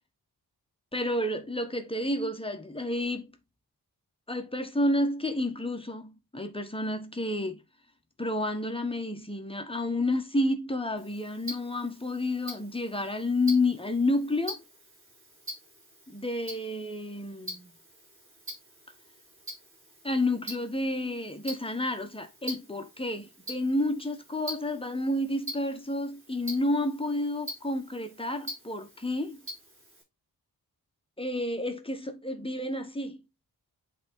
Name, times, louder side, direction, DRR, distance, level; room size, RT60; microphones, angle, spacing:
voice 1, 0.9-3.3 4.3-7.6 8.2-14.6 16.1-17.7 20.0-29.4 31.2-33.2, left 1 dB, 15° left, 1.2 m, -30 dB
Tick-tock, 11.0-30.0, right 1 dB, 30° right, 4.6 m, -45 dB
8.5 x 3.7 x 3.7 m
wide cardioid pair, 130°, 40 cm